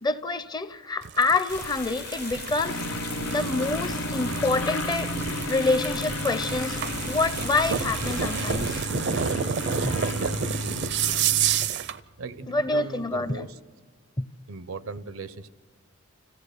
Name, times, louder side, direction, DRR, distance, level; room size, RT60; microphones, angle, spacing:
voice 1, 0.0-2.8 3.3-5.1 5.4-6.8 7.1-8.8 9.8-9.9 12.5-13.5 14.2-14.3, left 3 dB, 20° left, 0.5 m, -27 dB
sound 1, 1.0-12.0, right 8 dB, 55° right, 0.5 m, -30 dB
sound 2, 1.5-8.9, left 5 dB, 50° left, 0.8 m, -39 dB
sound 3, 2.6-11.7, left 1 dB, 85° left, 1.1 m, -33 dB
voice 2, 10.1-10.4 11.1-11.4 12.2-13.6 14.5-15.5, right 4 dB, 90° right, 0.7 m, -38 dB
26.0 x 16.0 x 6.7 m
head